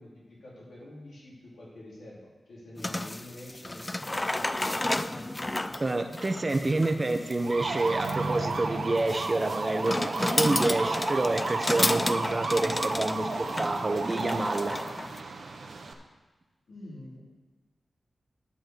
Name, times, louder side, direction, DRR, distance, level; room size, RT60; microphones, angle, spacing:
voice 1, 0.0-5.3 6.5-7.2 16.7-17.2, left 1 dB, 85° left, -6 dB, 3.9 m, -47 dB
sound 1, 2.8-15.2, left 1 dB, 20° left, 0.4 m, -32 dB
voice 2, 5.8-14.8, right 2 dB, 30° right, 7 dB, 0.9 m, -28 dB
sound 2, 7.4-15.9, right 3 dB, 70° right, 1.1 m, -33 dB
11.0 x 5.8 x 6.8 m, 1.2 s
wide cardioid pair, 80°, 0 cm